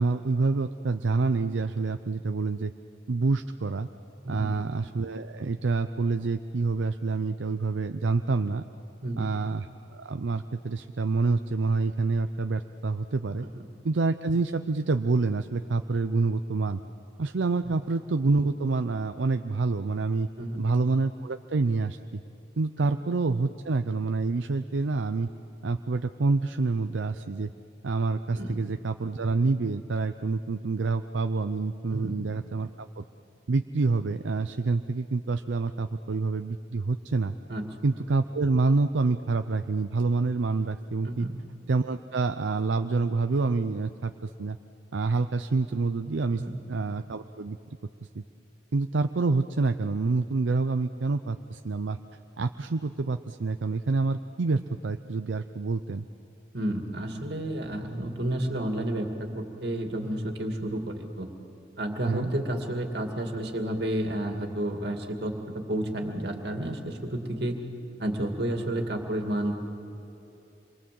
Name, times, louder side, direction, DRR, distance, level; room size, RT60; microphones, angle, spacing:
voice 1, 0.0-2.7 3.1-3.9 4.3-8.6 9.2-13.4 13.8-16.8 17.2-20.3 20.6-22.2 22.6-25.3 25.6-27.5 27.8-32.7 33.0-33.1 33.5-37.3 37.8-41.3 41.7-44.6 44.9-46.4 46.7-47.6 48.1-48.2 48.7-52.0 52.4-56.1 62.1-62.3, right 3 dB, 80° right, 8 dB, 0.6 m, -27 dB
voice 2, 4.2-4.6 9.0-9.2 13.4-13.6 17.6-17.7 20.4-20.6 28.3-28.6 31.9-32.2 37.5-37.8 41.0-41.4 46.4-46.6 56.5-61.3 61.8-67.6 68.0-69.6, right 1 dB, 60° right, 3 dB, 2.4 m, -31 dB
27.0 x 22.5 x 7.7 m, 2.8 s
head